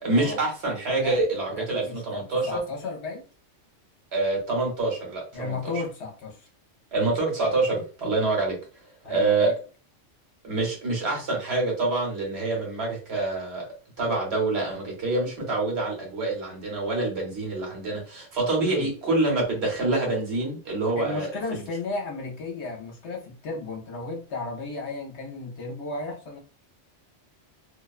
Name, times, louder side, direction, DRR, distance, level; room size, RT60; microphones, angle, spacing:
voice 1, 0.0-2.6 4.1-5.6 6.9-8.6 9.0-9.5 10.4-13.7 14.0-21.6, right 2 dB, 60° right, -1 dB, 1.2 m, -26 dB
voice 2, 1.8-3.3 5.3-6.5 9.0-9.5 18.6-18.9 21.0-26.4, left 3 dB, 65° left, 0 dB, 0.9 m, -34 dB
2.5 x 2.2 x 2.3 m, 0.37 s
omnidirectional pair, 1.3 m